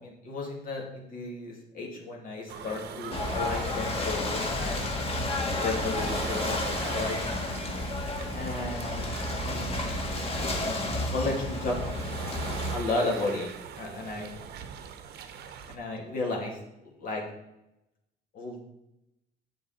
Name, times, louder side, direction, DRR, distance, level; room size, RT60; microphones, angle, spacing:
voice 1, 0.0-5.3 5.6-7.4 8.3-9.1 9.5-11.9 12.7-13.5 13.8-14.3 15.7-16.6 16.8-17.2 18.3-18.6, left 3 dB, 55° left, -1 dB, 2.5 m, -34 dB
sound 1, 2.5-15.8, right 8 dB, 75° right, 1.0 m, -42 dB
Ocean / Boat Water vehicle, 3.1-12.8, left 2 dB, 35° left, 1.7 m, -31 dB
8.6 x 6.9 x 4.3 m, 0.89 s
cardioid pair, 110°, 17 cm